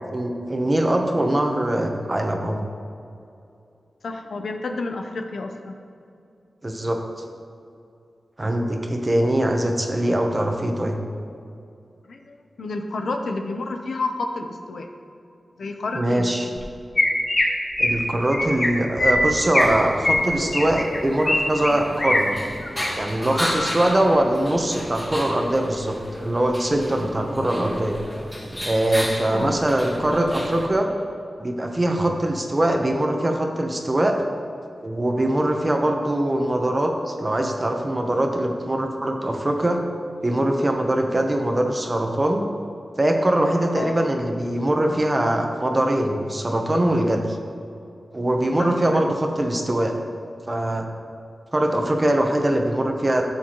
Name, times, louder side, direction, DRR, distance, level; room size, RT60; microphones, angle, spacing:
voice 1, 0.1-2.6 6.6-7.0 8.4-11.0 15.9-16.5 17.8-22.4 22.9-28.0 28.6-30.9 31.4-34.2 34.8-39.8 40.2-42.5 43.0-47.4 48.1-49.9 50.5-50.9 51.5-53.2, right 1 dB, 30° right, 3 dB, 1.1 m, -22 dB
voice 2, 4.0-5.8 12.1-14.9 15.6-16.5 29.3-29.6 43.8-44.1 44.9-45.0 48.6-49.2, left 3 dB, 80° left, 5 dB, 0.8 m, -30 dB
Chirp tweet, 16.6-16.7 17.0-17.4 17.8-18.0 18.3-18.7 19.0-19.7 20.0-21.4 21.6-22.2 22.6-22.9 23.3-23.7, left 1 dB, 40° left, 1.7 m, -21 dB
sound 1, 19.6-30.7, equal, 10° left, 2.1 m, -34 dB
13.0 x 7.1 x 3.1 m, 2.6 s
wide cardioid pair, 80°, 0 cm